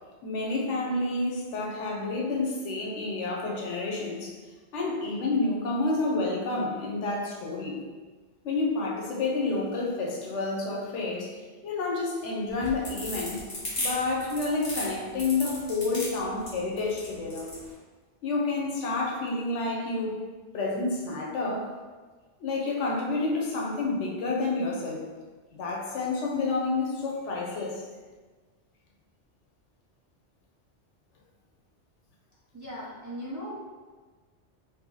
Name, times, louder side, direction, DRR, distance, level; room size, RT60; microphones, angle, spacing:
voice 1, 0.2-4.4 4.7-7.8 8.4-11.4 11.6-13.4 13.8-17.5 18.2-20.2 20.5-21.7 22.4-25.1 25.5-27.9, left 3 dB, 90° left, -2 dB, 1.0 m, -29 dB
sound 1, 12.5-17.6, left 1 dB, 55° left, 1.3 m, -34 dB
voice 2, 32.5-33.5, equal, 25° right, -8 dB, 0.4 m, -38 dB
2.8 x 2.6 x 3.8 m, 1.4 s
omnidirectional pair, 1.2 m